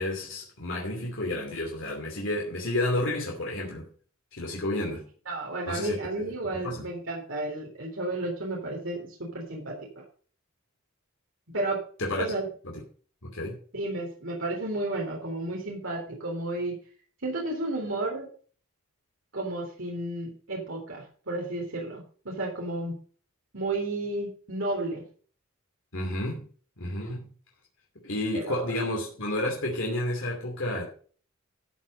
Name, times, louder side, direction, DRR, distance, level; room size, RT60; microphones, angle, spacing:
voice 1, 0.0-3.9 4.3-5.0 5.7-6.3 6.5-6.9 12.0-12.2 12.6-12.8 13.2-13.6 25.9-26.4 26.8-27.3 28.0-30.8, left 1 dB, 65° left, 2.7 m, -31 dB
voice 2, 5.3-9.8 11.5-11.8 12.2-12.5 13.7-16.7 17.2-18.3 19.3-22.9 23.5-25.0 28.1-28.7, right 2 dB, 65° right, 3.6 m, -32 dB
13.0 x 6.3 x 5.2 m
head